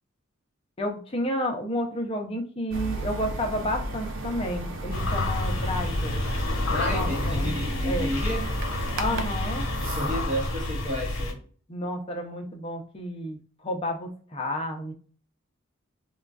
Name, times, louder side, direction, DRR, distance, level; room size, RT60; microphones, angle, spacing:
voice 1, 0.8-6.2 6.9-7.5 7.8-8.1 9.0-9.7 11.7-13.4 13.6-14.9, equal, 25° left, 3 dB, 0.6 m, -31 dB
sound 1, 2.7-10.3, right 2 dB, 60° right, 0.5 m, -34 dB
sound 2, 4.9-11.3, left 2 dB, 65° left, 0.9 m, -29 dB
voice 2, 6.7-8.5 9.8-11.4, equal, 35° right, -7 dB, 0.9 m, -31 dB
3.7 x 2.2 x 2.3 m, 0.43 s
head